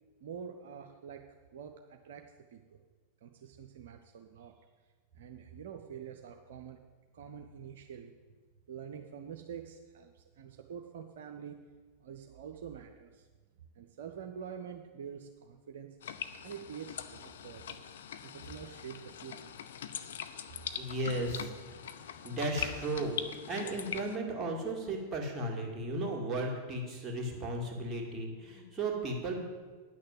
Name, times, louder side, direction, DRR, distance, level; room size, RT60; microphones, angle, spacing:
voice 1, 0.2-1.3 1.5-2.8 3.2-4.6 5.1-6.8 7.1-8.1 8.7-11.6 12.0-13.3 13.7-15.9 16.4-17.9 18.2-19.5, right 7 dB, 55° right, 4 dB, 0.6 m, -46 dB
Drawer open or close, 14.9-23.7, left 2 dB, 90° left, 2.3 m, -55 dB
sound 1, 16.0-24.2, left 8 dB, 60° left, 0.5 m, -42 dB
voice 2, 20.8-21.5 22.2-23.1 23.5-29.4, right 2 dB, 15° right, -2 dB, 2.3 m, -35 dB
9.8 x 6.5 x 7.7 m, 1.4 s
figure-of-eight pair, 90°, 0 cm